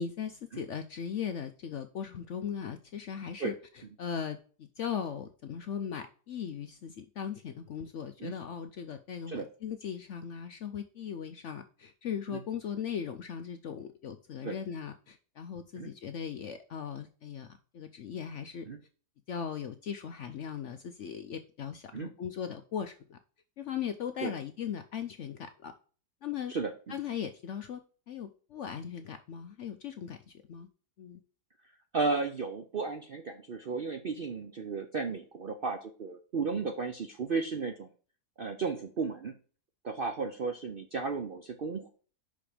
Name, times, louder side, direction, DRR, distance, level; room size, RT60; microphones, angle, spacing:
voice 1, 0.0-18.7 19.3-23.2 23.6-25.7 26.2-26.5 26.9-27.8 28.1-30.7 31.0-31.2, left 8 dB, 65° left, 8 dB, 0.7 m, -38 dB
voice 2, 31.9-37.9 38.4-39.3 39.8-41.9, right 4 dB, 60° right, 6 dB, 0.6 m, -34 dB
5.7 x 5.2 x 5.0 m, 0.40 s
omnidirectional pair, 1.8 m